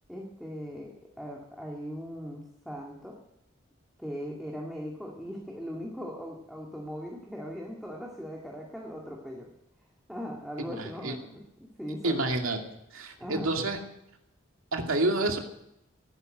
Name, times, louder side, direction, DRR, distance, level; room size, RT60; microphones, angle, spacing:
voice 1, 0.1-3.2 4.0-9.5 10.1-11.4 11.8-12.2 13.2-13.5, equal, ahead, -2 dB, 2.0 m, -39 dB
voice 2, 10.8-11.1 12.0-12.6 12.9-13.8 14.7-15.4, right 2 dB, 75° right, 3 dB, 2.5 m, -28 dB
17.5 x 10.0 x 7.7 m, 0.81 s
head